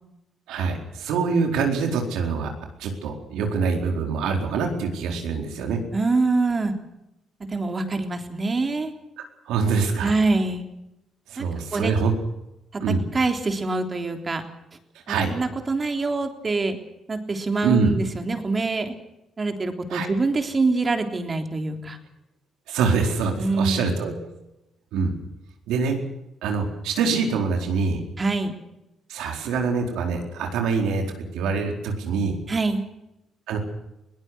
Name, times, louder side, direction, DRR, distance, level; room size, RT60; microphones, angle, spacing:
voice 1, 0.5-2.5 2.8-5.8 9.5-10.1 11.3-12.1 12.8-13.0 15.1-15.3 17.6-17.9 19.9-20.1 22.7-24.1 24.9-25.1 25.7-26.0 26.4-28.0 29.1-32.4 33.5-33.6, right 5 dB, 90° right, 3 dB, 4.4 m, -24 dB
voice 2, 5.9-6.7 7.5-8.9 10.0-10.6 11.4-11.9 13.1-14.4 15.1-16.8 17.1-18.9 19.4-22.0 23.4-24.1 28.2-28.5 32.5-32.8, right 3 dB, 30° right, 5 dB, 3.5 m, -25 dB
21.5 x 18.5 x 8.1 m, 0.89 s
cardioid pair, 90°, 0 cm